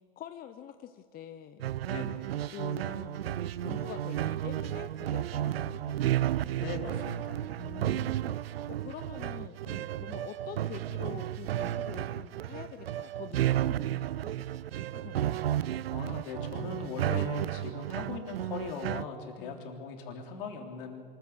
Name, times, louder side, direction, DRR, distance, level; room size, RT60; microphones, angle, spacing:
voice 1, 0.2-1.9 2.5-6.6 7.6-8.4 8.7-14.5 14.8-15.4 19.4-19.6, left 10 dB, 30° left, 9 dB, 0.9 m, -46 dB
sound 1, 1.6-19.1, right 12 dB, 85° right, 0.5 m, -33 dB
voice 2, 1.9-2.2 6.5-7.4 15.9-21.0, left 5 dB, 65° left, 3 dB, 3.5 m, -39 dB
23.5 x 14.0 x 8.0 m, 2.1 s
hypercardioid pair, 105°, 29 cm